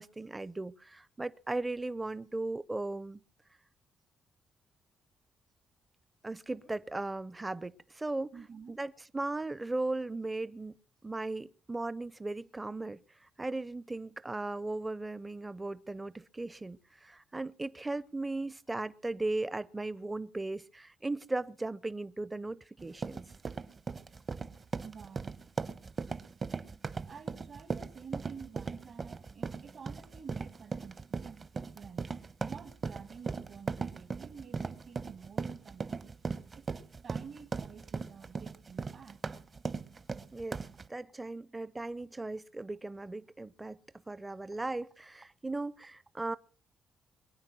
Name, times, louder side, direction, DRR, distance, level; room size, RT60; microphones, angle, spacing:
voice 1, 0.0-3.2 6.2-8.3 8.7-10.7 11.0-13.0 13.4-23.2 40.3-40.6 40.9-43.8 44.1-46.4, right 2 dB, 15° right, 0.7 m, -37 dB
voice 2, 8.3-8.8 24.8-25.3 27.1-32.2 32.4-36.1 36.5-39.2, right 6 dB, 55° right, 1.9 m, -50 dB
sound 1, 22.8-40.9, right 4 dB, 35° right, 1.0 m, -38 dB
23.0 x 9.6 x 6.1 m
cardioid pair, 90°, 0 cm